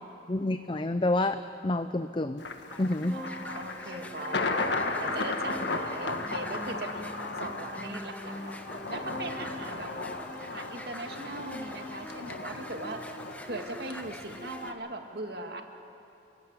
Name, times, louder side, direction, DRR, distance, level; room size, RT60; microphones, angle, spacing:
voice 1, 0.3-2.4 2.8-3.2, left 2 dB, 30° left, 10 dB, 0.6 m, -28 dB
Thunder, 2.4-14.7, left 3 dB, 80° left, 1.6 m, -36 dB
sound 1, 2.7-14.7, left 1 dB, 10° left, 1.3 m, -43 dB
voice 2, 3.1-7.1 7.4-8.6 8.9-9.9 10.4-13.0 13.5-15.6, right 2 dB, 60° right, 4 dB, 2.2 m, -39 dB
29.0 x 17.0 x 9.7 m, 2.9 s
head